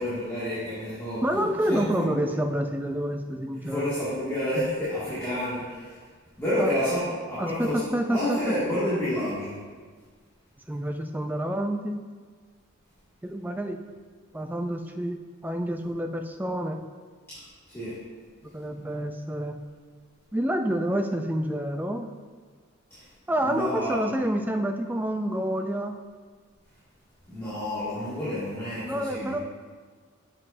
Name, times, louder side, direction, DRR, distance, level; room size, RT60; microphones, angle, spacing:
voice 1, 0.0-2.1 3.6-5.9 6.4-7.8 8.1-9.5 17.7-17.9 22.9-23.0 23.4-24.1 27.3-29.3, left 1 dB, 10° left, -13 dB, 2.0 m, -29 dB
voice 2, 1.2-3.9 6.6-6.7 7.4-8.6 10.7-12.0 13.2-13.8 14.3-16.8 18.5-19.6 20.3-22.1 23.3-26.0 28.8-29.4, right 1 dB, 10° right, 4 dB, 0.3 m, -28 dB
7.6 x 7.4 x 2.6 m, 1.5 s
head